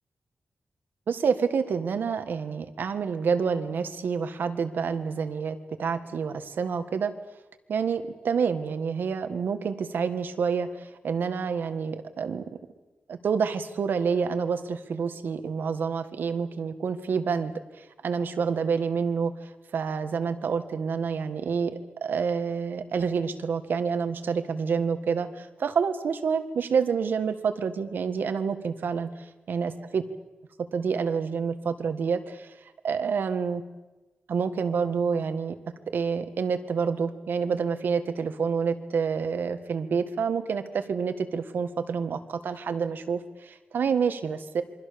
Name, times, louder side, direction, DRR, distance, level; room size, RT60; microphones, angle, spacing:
voice 1, 1.1-7.1 7.7-12.4 13.1-30.0 30.7-32.5 32.8-33.6 34.3-35.6 35.9-44.6, right 6 dB, 80° right, 9 dB, 1.8 m, -28 dB
27.5 x 24.0 x 7.0 m, 1.1 s
wide cardioid pair, 170°, 3 cm